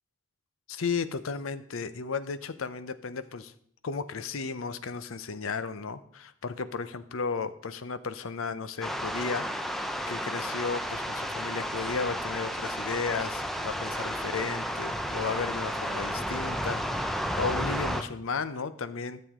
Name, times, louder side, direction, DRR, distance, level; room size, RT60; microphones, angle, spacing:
voice 1, 0.7-3.5 3.8-9.5 10.1-19.2, left 5 dB, 80° left, 13 dB, 0.6 m, -34 dB
sound 1, 8.8-18.0, equal, ahead, 0.5 m, -32 dB
13.0 x 7.0 x 3.6 m, 0.64 s
head